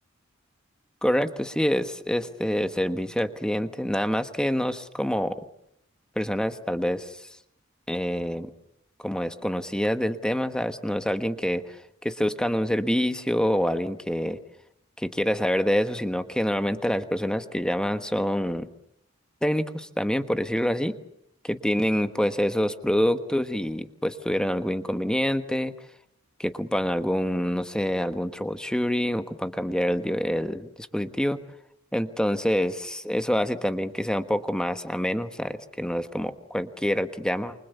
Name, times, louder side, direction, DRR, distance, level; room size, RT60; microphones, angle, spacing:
voice 1, 1.0-5.3 6.1-7.3 7.9-8.5 9.0-11.8 12.0-14.4 15.0-18.7 19.4-20.9 21.4-25.7 26.4-31.4 31.9-37.5, equal, 5° left, 9 dB, 1.3 m, -26 dB
29.0 x 25.0 x 6.8 m, 0.74 s
head